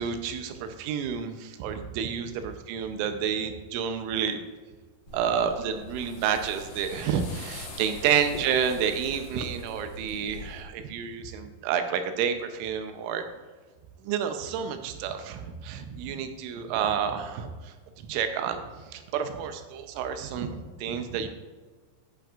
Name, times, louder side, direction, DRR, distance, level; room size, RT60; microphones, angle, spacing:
voice 1, 0.0-4.4 5.1-13.2 14.0-18.6 18.9-21.3, right 7 dB, 90° right, 7 dB, 3.3 m, -30 dB
sound 1, 5.1-10.6, left 2 dB, 85° left, 1.3 m, -43 dB
10.5 x 8.8 x 2.5 m, 1.4 s
omnidirectional pair, 5.4 m